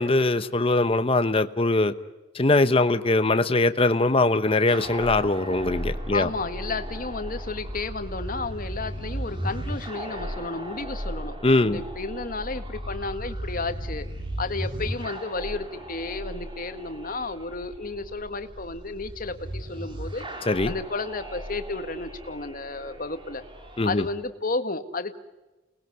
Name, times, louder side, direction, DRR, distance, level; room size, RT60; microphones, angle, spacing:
voice 1, 0.0-1.9 2.3-6.3 11.4-11.8 20.5-20.7 23.8-24.0, left 2 dB, 30° left, 10 dB, 0.9 m, -21 dB
sound 1, 4.7-24.1, equal, 25° right, 3.7 m, -36 dB
voice 2, 6.1-14.1 14.4-20.3 20.7-23.4 23.8-25.2, left 3 dB, 45° left, 9 dB, 1.8 m, -32 dB
29.0 x 20.5 x 9.5 m, 1.1 s
head